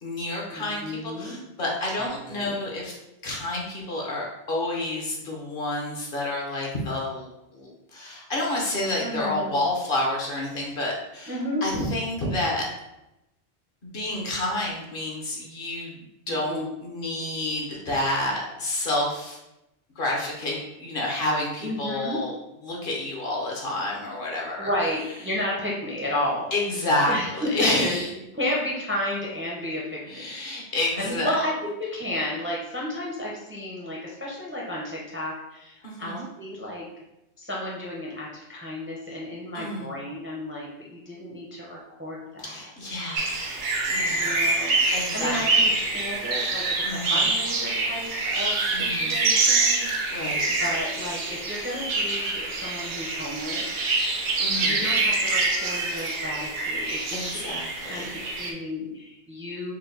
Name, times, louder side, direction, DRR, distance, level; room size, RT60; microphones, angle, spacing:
voice 1, 0.0-3.0 3.2-11.3 11.6-12.7 13.8-19.4 20.0-22.3 22.6-24.7 26.5-28.1 30.1-31.3 35.8-36.3 39.5-39.9 42.4-43.6 43.9-44.5 44.9-45.4 46.8-47.2 48.7-49.2 49.8-50.6 54.4-54.9 57.1-58.3, left 1 dB, 55° left, -2 dB, 1.0 m, -29 dB
voice 2, 0.5-1.4 2.0-2.6 9.0-9.6 11.3-11.7 16.3-16.7 21.6-22.2 24.6-26.4 27.1-28.0 28.3-30.5 31.0-36.9 37.4-42.6 44.1-44.8 45.1-53.8 54.6-57.4 57.8-58.1 58.4-59.7, left 1 dB, 15° right, -3 dB, 0.5 m, -32 dB
sound 1, 43.2-58.5, right 3 dB, 65° right, 0.8 m, -25 dB
4.4 x 2.2 x 3.8 m, 0.91 s
omnidirectional pair, 1.1 m